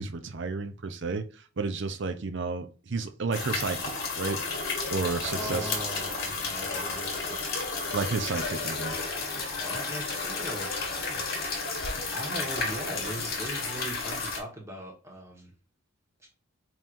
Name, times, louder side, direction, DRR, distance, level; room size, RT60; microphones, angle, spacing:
voice 1, 0.0-4.4 4.9-5.7 7.9-9.0 9.3-9.5, right 4 dB, 55° right, 0.6 m, -32 dB
sound 1, 3.3-14.4, left 4 dB, 45° left, 1.3 m, -32 dB
voice 2, 5.3-7.5 9.3-11.7 12.1-15.5, right 1 dB, 15° right, 1.3 m, -40 dB
5.5 x 3.1 x 2.5 m
head